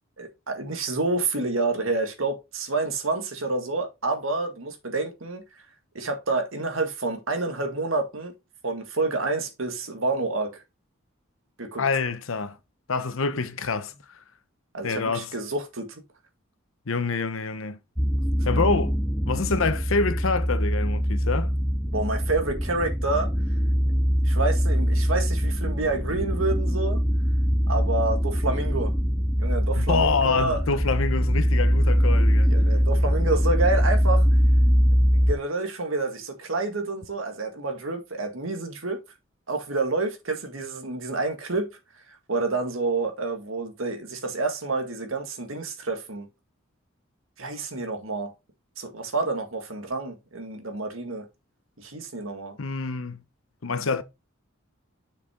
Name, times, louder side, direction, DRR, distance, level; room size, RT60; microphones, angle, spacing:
voice 1, 0.2-5.4 5.9-8.3 8.6-10.6 11.6-11.8 14.7-16.0 21.9-23.3 24.2-27.0 27.7-28.9 29.4-30.6 32.4-34.3 35.1-39.0 39.5-41.7 42.1-46.3 47.4-48.3 48.8-51.2 51.8-52.6, right 3 dB, 80° right, 1.9 m, -28 dB
voice 2, 11.8-12.6 12.9-13.9 14.8-15.3 16.9-17.8 18.4-18.9 19.3-21.5 29.8-32.5 52.6-53.2 53.6-54.0, left 4 dB, 80° left, 0.9 m, -26 dB
sound 1, 18.0-35.3, equal, ahead, 0.4 m, -22 dB
6.7 x 5.7 x 3.7 m
head